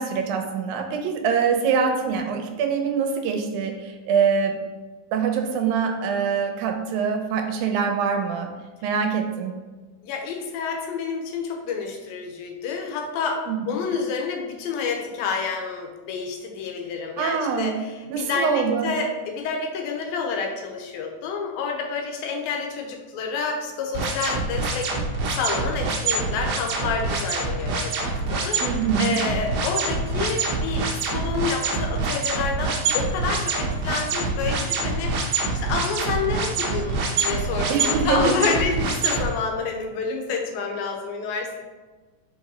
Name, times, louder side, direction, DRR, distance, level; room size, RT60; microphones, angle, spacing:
voice 1, 0.0-4.6 5.1-8.5 8.8-9.5 13.5-13.6 17.2-17.7 18.1-18.9 28.6-29.2 37.7-38.4, right 6 dB, 80° right, 4 dB, 2.4 m, -24 dB
voice 2, 10.0-25.1 25.4-41.6, left 5 dB, 80° left, 2 dB, 2.6 m, -29 dB
sound 1, 23.9-39.2, right 4 dB, 60° right, 1.9 m, -25 dB
5.6 x 4.9 x 4.1 m, 1.3 s
omnidirectional pair, 4.2 m